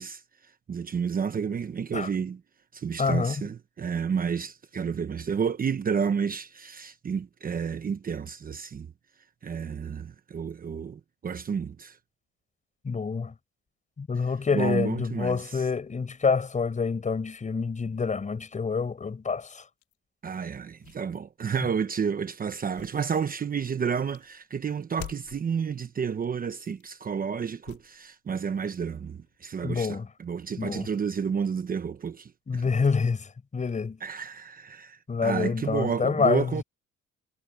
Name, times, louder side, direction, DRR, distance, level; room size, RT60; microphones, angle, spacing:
voice 1, 0.0-2.4 2.7-8.9 9.4-12.0 14.5-15.7 20.2-32.7 34.0-36.6, right 6 dB, 30° right, 0.9 m, -31 dB
voice 2, 3.0-3.4 12.8-13.3 14.0-19.6 29.6-30.1 30.6-30.9 32.5-34.0 35.1-36.6, left 5 dB, 25° left, 4.8 m, -27 dB
sound 1, 19.8-20.0 20.6-22.0 22.5-23.6 24.1-24.4 24.9-25.5 26.5-27.0 27.6-28.2 28.5-29.8, left 14 dB, 80° left, 4.8 m, -48 dB
cardioid pair, 130°, 29 cm